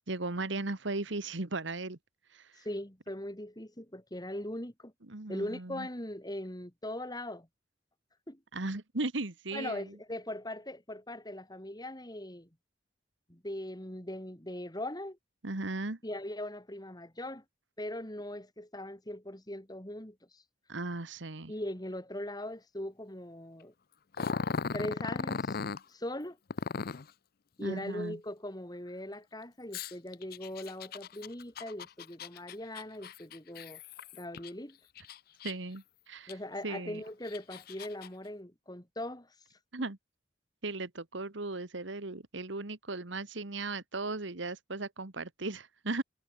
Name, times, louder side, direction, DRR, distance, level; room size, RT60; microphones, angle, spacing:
voice 1, 0.1-2.0 2.3-2.7 5.1-5.9 8.5-9.9 15.4-16.0 20.7-21.5 27.6-28.2 35.4-36.3 36.6-37.0 39.7-40.0 40.6-46.0, right 2 dB, 75° right, 1.7 m, -37 dB
voice 2, 2.6-4.9 5.3-7.5 8.3-8.4 9.5-12.5 13.3-15.2 16.0-17.4 17.8-20.4 21.5-23.7 24.7-25.6 25.9-26.4 27.6-33.8 34.1-34.8 36.3-39.3, left 1 dB, 20° left, 3.2 m, -40 dB
Growling, 24.1-25.8 26.5-27.1 29.7-34.5 35.0-35.8 36.3-36.4 37.1-38.1, left 5 dB, 50° left, 0.5 m, -37 dB
head